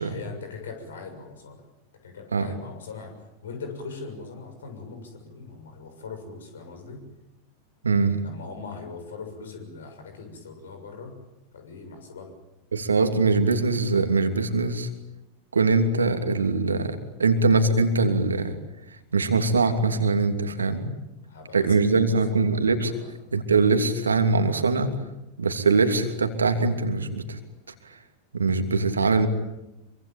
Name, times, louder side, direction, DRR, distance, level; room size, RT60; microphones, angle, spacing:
voice 1, 0.0-1.6 2.0-7.0 8.2-11.1 11.5-12.3 21.3-22.2 22.9-23.1 29.1-29.3, left 4 dB, 65° left, 6 dB, 6.9 m, -40 dB
voice 2, 7.8-8.2 12.7-14.9 15.5-18.5 19.1-20.9 21.5-22.9 23.3-24.9 25.4-27.4 28.3-29.3, right 3 dB, 75° right, 7 dB, 2.9 m, -22 dB
26.5 x 24.5 x 9.1 m, 0.94 s
figure-of-eight pair, 90°, 0 cm